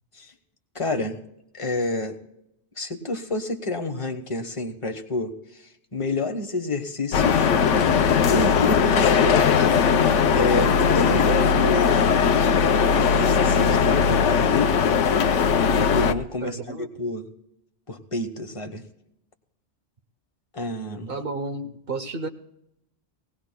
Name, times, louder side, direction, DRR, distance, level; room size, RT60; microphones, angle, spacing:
voice 1, 0.7-1.2 1.5-2.2 2.8-7.5 8.3-9.5 10.3-12.1 12.6-14.7 15.7-17.3 17.9-18.8 20.5-21.1, left 2 dB, 30° left, 4 dB, 1.1 m, -29 dB
sound 1, 7.1-16.1, left 6 dB, 80° left, 1.0 m, -19 dB
voice 2, 16.4-16.9 21.1-22.3, right 3 dB, 55° right, 6 dB, 1.0 m, -32 dB
18.5 x 17.5 x 2.2 m, 0.80 s
omnidirectional pair, 1.2 m